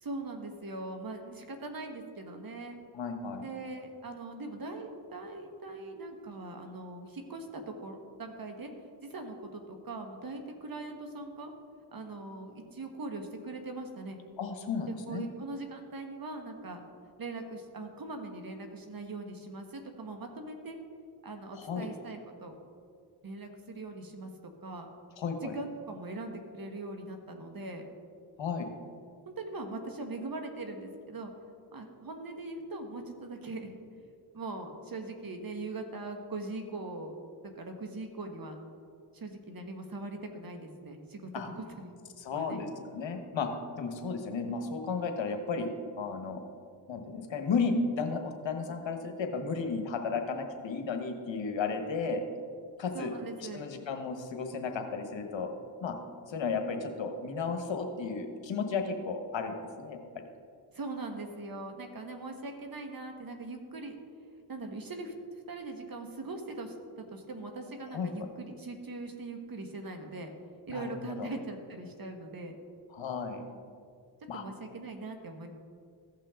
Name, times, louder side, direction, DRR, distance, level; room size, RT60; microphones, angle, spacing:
voice 1, 0.0-2.7 3.4-11.5 11.9-14.2 15.1-20.8 21.2-22.6 23.2-24.3 24.6-24.9 25.4-27.9 29.2-31.3 31.7-33.8 34.3-37.1 37.6-38.6 39.1-41.9 42.3-42.6 52.9-53.6 60.7-63.9 64.5-65.1 65.5-70.3 70.7-72.6 74.3-75.5, right 2 dB, 45° right, 5 dB, 1.4 m, -41 dB
voice 2, 2.9-3.4 14.4-15.2 21.6-21.9 25.2-25.5 28.4-28.7 41.3-41.5 42.2-45.7 46.0-46.4 46.9-52.2 52.8-53.1 53.5-55.5 55.8-55.9 56.3-60.2 67.9-68.3 70.7-71.3 72.9-73.4 74.3-74.4, left 4 dB, 65° left, 5 dB, 1.3 m, -34 dB
15.5 x 5.7 x 3.7 m, 2.2 s
supercardioid pair, 50°, 49 cm